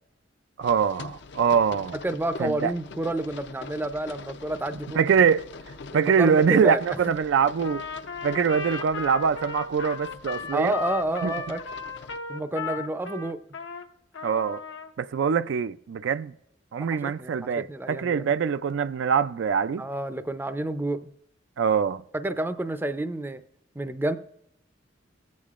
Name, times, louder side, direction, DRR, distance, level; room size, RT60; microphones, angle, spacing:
sound 1, 0.6-12.2, left 4 dB, 65° left, 0.6 m, -44 dB
voice 1, 0.6-2.0 2.4-2.7 5.0-5.5 5.9-7.8 8.2-10.7 11.2-11.3 14.2-14.6 15.0-16.3 16.7-19.8 21.6-22.0, right 6 dB, 70° right, 0.4 m, -23 dB
voice 2, 2.0-5.1 5.9-7.2 10.5-11.6 12.3-13.4 16.8-18.3 19.8-21.1 22.1-23.4 23.8-24.2, right 1 dB, 10° right, 0.4 m, -29 dB
Trumpet, 7.6-13.8 14.1-14.9, left 4 dB, 85° left, 0.9 m, -35 dB
19.0 x 8.4 x 2.4 m
head